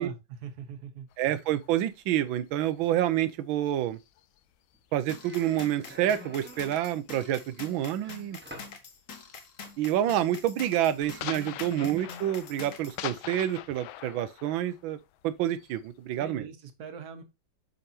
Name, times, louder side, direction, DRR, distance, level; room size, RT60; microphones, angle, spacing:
voice 1, 0.0-1.1 11.2-11.5 16.2-17.2, right 7 dB, 55° right, 1.4 m, -42 dB
sound 1, 1.1-5.0 5.3-8.7 9.0-9.4 9.7-16.1, left 13 dB, 90° left, 1.4 m, -44 dB
voice 2, 1.2-4.0 4.9-8.4 9.8-15.0 15.2-16.4, right 12 dB, 90° right, 1.4 m, -28 dB
sound 2, 4.7-4.9 5.2-6.9 8.0-8.8 11.0-11.3, right 1 dB, 10° right, 0.8 m, -48 dB
sound 3, 5.1-13.0, left 5 dB, 50° left, 1.2 m, -45 dB
7.8 x 5.3 x 2.7 m
omnidirectional pair, 2.2 m